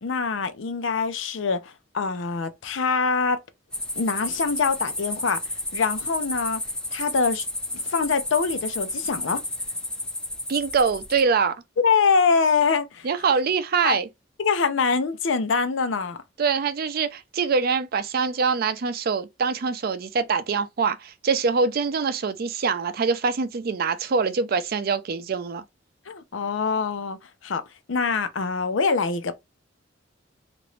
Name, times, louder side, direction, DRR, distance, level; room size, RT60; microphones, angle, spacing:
voice 1, 0.0-3.4 4.0-5.4 5.7-6.6 6.9-7.5 7.7-9.4 11.8-13.1 13.8-14.0 14.4-16.2 26.1-27.2 27.4-27.6 27.9-29.3, left 5 dB, 80° left, 0.6 m, -24 dB
sound 1, 3.7-11.2, left 1 dB, 5° left, 0.4 m, -32 dB
voice 2, 10.5-11.6 13.0-14.1 16.4-25.6, right 5 dB, 55° right, 0.4 m, -24 dB
3.0 x 2.5 x 3.1 m
head